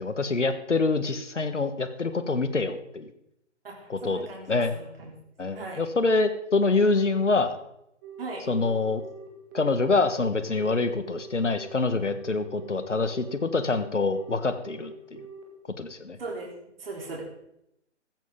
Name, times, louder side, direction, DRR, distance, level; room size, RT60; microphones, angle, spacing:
voice 1, 0.0-3.1 3.9-4.7 5.4-7.6 8.5-9.0 9.5-15.3 15.8-16.2, left 3 dB, 75° left, 11 dB, 1.6 m, -26 dB
voice 2, 3.6-5.2 5.5-5.8 8.2-8.4 16.2-16.5 16.8-17.2, right 3 dB, 50° right, -2 dB, 3.6 m, -38 dB
Telephone, 8.0-15.4, right 6 dB, 15° right, 1.8 m, -44 dB
15.5 x 13.5 x 3.8 m, 0.80 s
figure-of-eight pair, 145°, 36 cm